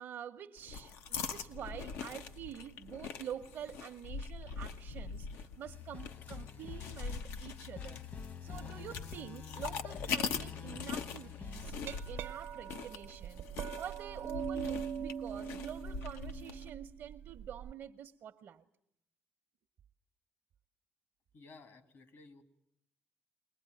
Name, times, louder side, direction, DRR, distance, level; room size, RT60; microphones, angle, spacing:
voice 1, 0.0-8.1 8.4-18.6, right 9 dB, 65° right, 0.8 m, -47 dB
sound 1, 0.6-16.7, left 5 dB, 90° left, 1.0 m, -42 dB
sound 2, 5.6-11.7, left 7 dB, 45° left, 1.2 m, -46 dB
Glass, 11.6-17.7, right 8 dB, 85° right, 1.0 m, -42 dB
voice 2, 21.3-22.4, left 3 dB, 65° left, 2.4 m, -56 dB
22.0 x 20.0 x 9.1 m
cardioid pair, 100°, 4 cm